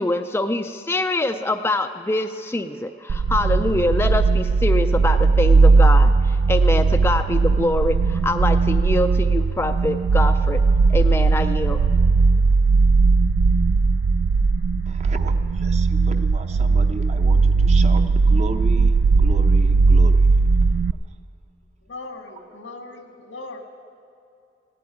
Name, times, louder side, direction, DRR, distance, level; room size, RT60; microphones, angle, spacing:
voice 1, 0.0-10.6 10.9-11.8, left 2 dB, 10° left, 6 dB, 0.3 m, -24 dB
sound 1, 3.1-20.9, right 4 dB, 85° right, 0.3 m, -18 dB
voice 2, 14.9-20.3, right 2 dB, 35° right, 7 dB, 0.8 m, -35 dB
voice 3, 21.8-23.6, left 3 dB, 90° left, 4 dB, 1.7 m, -38 dB
16.5 x 8.5 x 9.7 m, 2.6 s
head